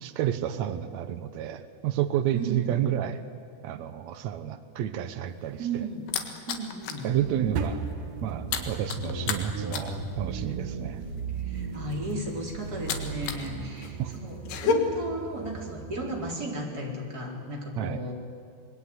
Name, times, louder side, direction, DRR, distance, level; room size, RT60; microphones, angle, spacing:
voice 1, 0.0-3.2 3.6-5.8 7.0-7.8 8.2-11.0 14.0-14.1 17.8-18.0, right 11 dB, 90° right, 10 dB, 1.5 m, -30 dB
voice 2, 2.3-2.9 5.6-6.1 6.5-7.1 11.4-18.1, right 2 dB, 25° right, -1 dB, 4.3 m, -35 dB
sound 1, 5.3-7.1 7.4-7.7 7.9-13.5 13.8-14.7, left 6 dB, 80° left, 3.7 m, -32 dB
sound 2, 7.1-7.8 8.2-13.3, right 4 dB, 50° right, 2.0 m, -37 dB
sound 3, 7.5-16.3, right 4 dB, 65° right, 3.2 m, -39 dB
26.5 x 21.0 x 9.6 m, 2.3 s
omnidirectional pair, 4.6 m